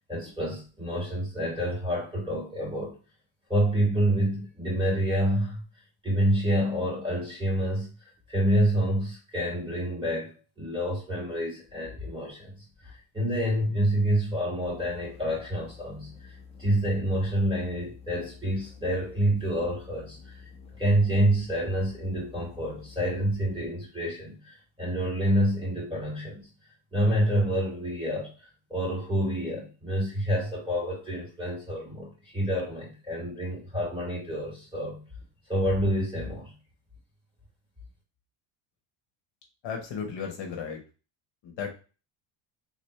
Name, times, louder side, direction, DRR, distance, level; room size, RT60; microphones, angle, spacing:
voice 1, 0.1-2.9 3.5-5.6 6.0-7.9 8.3-20.4 20.8-26.4 26.9-28.4 28.7-35.0 35.5-36.5, equal, 10° right, -4 dB, 2.6 m, -28 dB
sound 1, 14.7-23.8, left 5 dB, 10° left, 0.7 m, -49 dB
voice 2, 39.6-40.8 41.4-41.7, left 6 dB, 60° left, 2 dB, 1.3 m, -34 dB
4.0 x 3.6 x 3.2 m, 0.34 s
cardioid pair, 130°, 50 cm